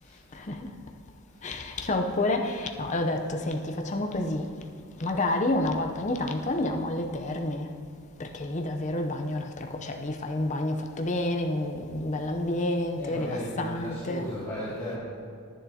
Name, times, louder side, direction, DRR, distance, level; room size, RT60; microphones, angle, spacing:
voice 1, 0.3-0.7 1.4-4.5 5.0-7.8 8.2-14.3, left 1 dB, 30° left, 3 dB, 0.6 m, -29 dB
voice 2, 13.0-15.0, equal, 15° left, -13 dB, 2.1 m, -36 dB
11.5 x 10.0 x 2.8 m, 2.2 s
head